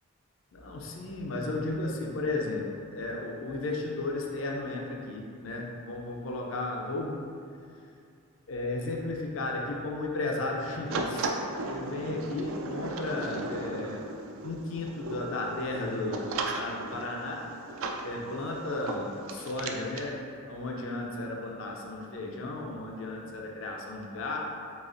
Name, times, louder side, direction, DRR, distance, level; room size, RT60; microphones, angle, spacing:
voice 1, 0.5-7.2 8.5-11.3 11.7-14.1 14.4-17.5 18.0-24.4, left 2 dB, 60° left, 0 dB, 0.4 m, -34 dB
sound 1, 10.9-20.1, right 2 dB, 60° right, 0.3 m, -36 dB
4.0 x 3.5 x 2.4 m, 2.4 s
head